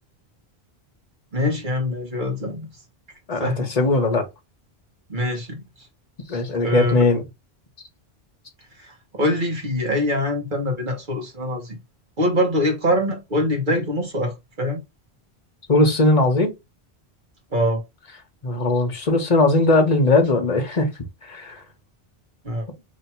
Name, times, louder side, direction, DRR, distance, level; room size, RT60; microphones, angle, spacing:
voice 1, 1.3-2.7 3.4-3.7 5.1-5.9 6.6-7.0 8.8-11.8 12.2-14.8 17.5-17.8 22.4-22.7, left 1 dB, 50° right, 1.4 m, -24 dB
voice 2, 3.3-4.3 6.3-7.2 15.7-16.5 18.4-20.9 21.2-21.6, left 2 dB, 40° left, 1.1 m, -19 dB
3.1 x 2.8 x 4.3 m
omnidirectional pair, 1.1 m